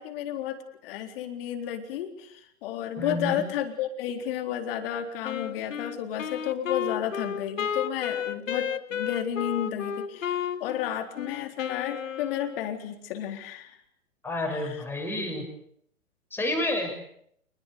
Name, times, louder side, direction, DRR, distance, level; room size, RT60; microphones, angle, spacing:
voice 1, 0.0-13.8 14.5-14.8, left 10 dB, 40° left, 6 dB, 4.0 m, -32 dB
voice 2, 3.0-3.4 14.2-15.5 16.3-16.9, left 1 dB, 5° left, 2 dB, 6.8 m, -29 dB
Wind instrument woodwind instrument, 5.2-12.7, left 8 dB, 65° left, 1.7 m, -33 dB
27.0 x 21.0 x 8.5 m, 0.70 s
hypercardioid pair, 125°, 41 cm